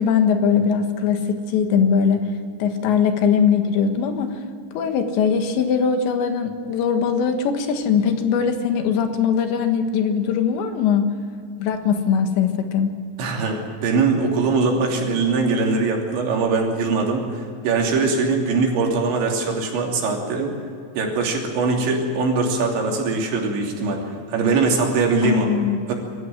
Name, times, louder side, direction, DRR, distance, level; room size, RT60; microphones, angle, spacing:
voice 1, 0.0-2.2 2.6-4.4 4.7-11.1 11.6-12.9 25.2-25.9, left 7 dB, 80° left, 6 dB, 3.8 m, -20 dB
voice 2, 13.2-20.5 21.0-24.0 24.3-25.5 25.9-26.0, right 4 dB, 90° right, 0 dB, 5.4 m, -21 dB
24.0 x 14.5 x 9.4 m, 2.3 s
omnidirectional pair, 5.1 m